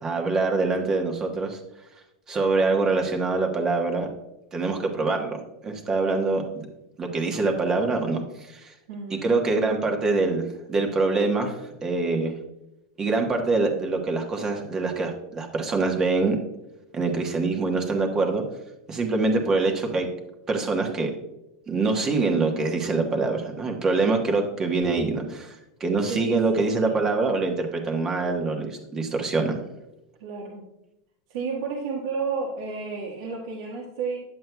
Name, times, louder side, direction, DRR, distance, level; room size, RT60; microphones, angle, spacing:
voice 1, 0.0-1.6 2.3-4.1 4.5-5.4 5.6-6.7 7.0-8.7 9.1-12.3 13.0-16.4 16.9-18.4 18.9-20.1 20.5-21.1 21.7-25.5 25.8-29.6, right 3 dB, 25° right, 3 dB, 1.2 m, -24 dB
voice 2, 8.9-9.3 26.1-27.1 30.2-30.7 31.3-34.2, right 4 dB, 70° right, -3 dB, 1.3 m, -32 dB
9.2 x 7.5 x 2.2 m, 0.91 s
supercardioid pair, 135°, 2 cm